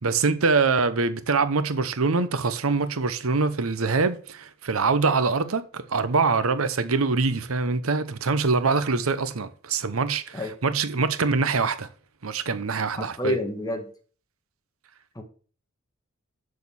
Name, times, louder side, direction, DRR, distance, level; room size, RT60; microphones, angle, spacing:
voice 1, 0.0-11.9 12.2-13.4, right 4 dB, 90° right, 0.9 m, -24 dB
voice 2, 12.9-13.9 15.1-15.2, left 1 dB, 20° left, 1.5 m, -29 dB
6.6 x 6.4 x 7.0 m
head